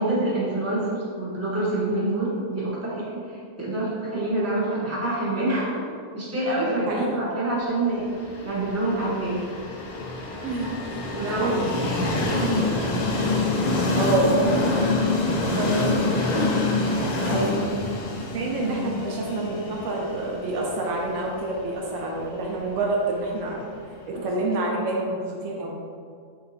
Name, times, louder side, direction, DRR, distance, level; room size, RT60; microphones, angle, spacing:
voice 1, 0.0-5.8 6.1-8.1 8.4-9.4 11.1-12.1 17.2-17.6 18.6-18.7, right 2 dB, 15° right, -8 dB, 1.0 m, -26 dB
voice 2, 6.6-7.1 10.4-11.6 13.9-14.9 15.3-17.8 18.2-23.7 24.1-25.8, right 2 dB, 75° right, -1 dB, 1.0 m, -28 dB
Train, 8.2-24.0, left 2 dB, 65° left, 0.4 m, -26 dB
3.9 x 2.6 x 4.1 m, 2.2 s
omnidirectional pair, 1.3 m